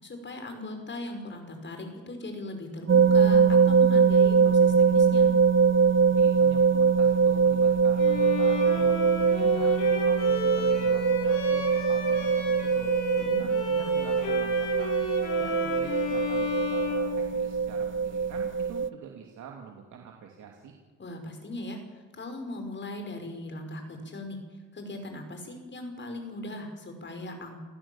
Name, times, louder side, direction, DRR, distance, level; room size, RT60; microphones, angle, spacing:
voice 1, 0.0-5.3 13.2-13.5 21.0-21.8 22.1-24.4 24.7-27.6, left 1 dB, 40° left, 5 dB, 5.8 m, -39 dB
sound 1, 2.9-18.9, right 5 dB, 40° right, 0.8 m, -22 dB
voice 2, 6.1-9.7 10.0-12.9 13.4-20.7, right 7 dB, 75° right, 1 dB, 2.9 m, -46 dB
Bowed string instrument, 8.0-17.8, left 3 dB, 85° left, 6.9 m, -34 dB
28.5 x 15.5 x 7.4 m, 1.3 s
cardioid pair, 90°, 30 cm